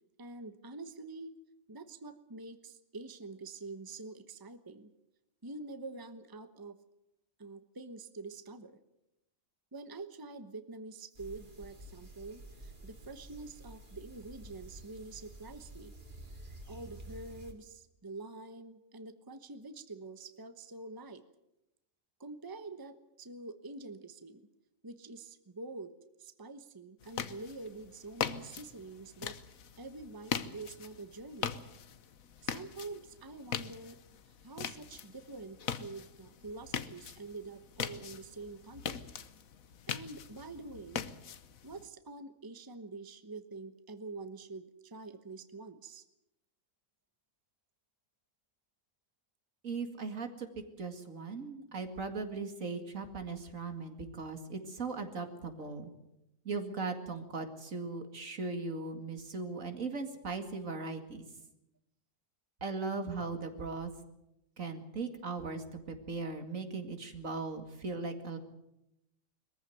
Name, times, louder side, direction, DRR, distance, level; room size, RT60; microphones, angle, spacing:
voice 1, 0.2-1.3 1.7-4.9 5.4-6.8 7.4-8.8 9.7-15.9 16.7-21.2 22.2-24.5 24.8-25.9 26.2-29.4 29.8-31.5 32.4-34.0 34.4-39.1 39.9-41.0 41.6-46.0, right 3 dB, 15° right, 10 dB, 1.0 m, -46 dB
sound 1, 11.1-17.5, right 1 dB, 35° right, 2.8 m, -50 dB
sound 2, 27.0-41.9, left 8 dB, 85° left, 1.4 m, -41 dB
voice 2, 49.6-50.5 50.8-55.9 56.4-61.2 62.6-63.9 64.6-68.4, right 4 dB, 70° right, 6 dB, 2.6 m, -38 dB
22.0 x 15.0 x 9.3 m, 0.88 s
omnidirectional pair, 1.4 m